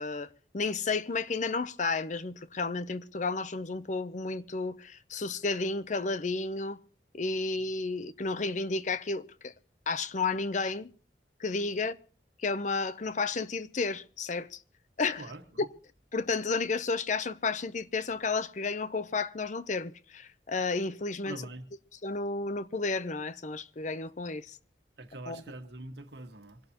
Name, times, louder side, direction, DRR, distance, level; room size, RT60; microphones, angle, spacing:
voice 1, 0.0-6.8 7.1-9.5 9.9-10.9 11.4-12.0 12.4-14.6 15.0-15.2 16.1-21.3 22.0-24.6 25.3-25.4, left 4 dB, 45° left, 0.7 m, -32 dB
voice 2, 15.2-15.7 21.2-21.7 25.0-26.6, right 2 dB, 70° right, 1.7 m, -44 dB
25.5 x 12.0 x 3.0 m
head